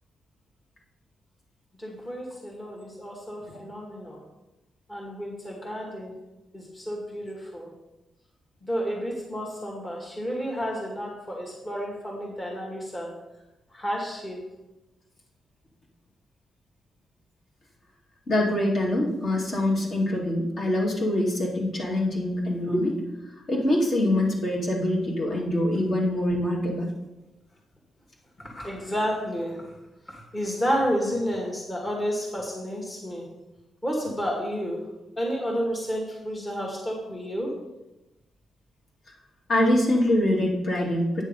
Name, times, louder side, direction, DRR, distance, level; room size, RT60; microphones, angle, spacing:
voice 1, 1.8-4.2 4.9-6.2 6.5-7.7 8.6-13.1 13.7-14.4 28.4-29.7 30.1-33.3 33.8-34.8 35.2-37.5, equal, 25° left, -1 dB, 2.0 m, -31 dB
voice 2, 18.3-23.0 23.5-26.9 39.5-41.2, left 1 dB, 50° left, -2 dB, 2.4 m, -24 dB
8.9 x 6.4 x 5.3 m, 0.97 s
cardioid pair, 110°, 0 cm